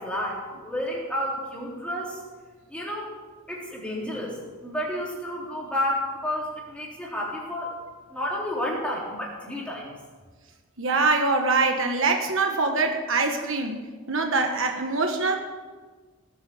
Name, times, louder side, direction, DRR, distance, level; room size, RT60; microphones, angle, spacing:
voice 1, 0.0-2.2 2.7-3.1 3.5-4.3 4.6-7.7 8.1-9.9, left 1 dB, 5° left, -4 dB, 3.6 m, -30 dB
voice 2, 10.8-13.8 14.1-15.4, right 3 dB, 60° right, 4 dB, 1.3 m, -24 dB
18.0 x 8.5 x 7.1 m, 1.4 s
head